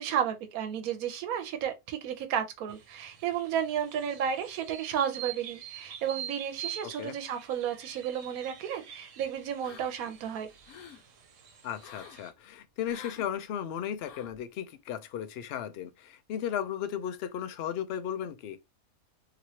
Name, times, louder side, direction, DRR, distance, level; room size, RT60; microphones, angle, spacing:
voice 1, 0.0-10.5, right 8 dB, 90° right, 1.1 m, -32 dB
sound 1, 2.7-12.3, right 10 dB, 65° right, 1.0 m, -46 dB
voice 2, 6.8-7.2 11.6-18.6, left 9 dB, 65° left, 0.6 m, -35 dB
sound 2, 9.6-10.1 10.5-11.0 11.8-12.2 12.8-13.3 14.0-14.4, left 8 dB, 90° left, 1.1 m, -48 dB
3.0 x 2.9 x 2.8 m
omnidirectional pair, 1.5 m